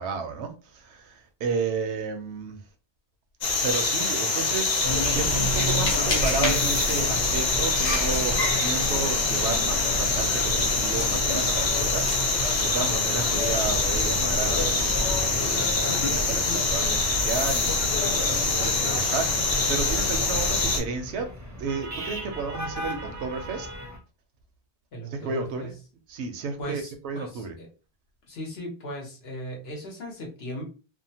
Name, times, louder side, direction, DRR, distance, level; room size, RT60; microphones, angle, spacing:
voice 1, 0.0-2.6 3.6-21.3 21.6-23.7 25.1-25.7 26.1-27.5, right 5 dB, 75° right, 0.8 m, -33 dB
sound 1, 3.4-20.8, left 3 dB, 50° left, 0.7 m, -25 dB
sound 2, 4.8-20.8, equal, 85° left, 1.3 m, -31 dB
sound 3, 6.9-24.0, equal, 30° right, 0.3 m, -40 dB
voice 2, 24.9-25.7 26.6-27.7 28.3-30.6, equal, 65° left, 1.1 m, -37 dB
2.7 x 2.1 x 2.7 m
omnidirectional pair, 1.1 m